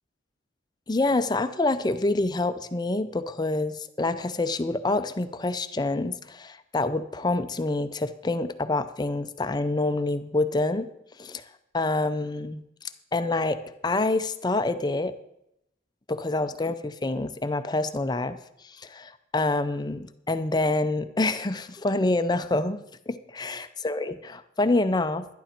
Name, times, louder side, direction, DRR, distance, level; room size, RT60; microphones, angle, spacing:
voice 1, 0.9-10.9 11.2-11.4 11.7-12.6 13.1-15.1 16.1-18.4 18.6-22.8 23.1-25.3, left 2 dB, 25° left, 10 dB, 0.5 m, -27 dB
12.0 x 11.5 x 4.4 m, 0.81 s
head